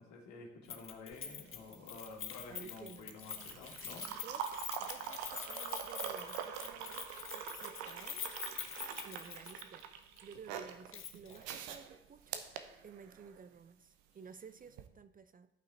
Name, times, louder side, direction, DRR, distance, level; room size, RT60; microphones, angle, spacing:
voice 1, 0.0-4.1, left 4 dB, 65° left, 0 dB, 2.2 m, -50 dB
Keys jangling, 0.7-9.8 10.2-10.3 10.9-11.4 11.7-11.8, left 8 dB, 40° left, 1.0 m, -45 dB
sound 1, 1.1-13.4 14.7-14.9, right 8 dB, 70° right, 0.8 m, -45 dB
voice 2, 2.5-3.6 4.0-8.2 8.7-9.9 10.2-12.5 12.8-15.5, right 6 dB, 30° right, 11 dB, 0.5 m, -54 dB
Scratching (performance technique), 4.6-6.6 7.1-9.3, left 3 dB, 20° left, 1.3 m, -65 dB
11.0 x 5.7 x 4.3 m, 0.87 s
figure-of-eight pair, 50°, 31 cm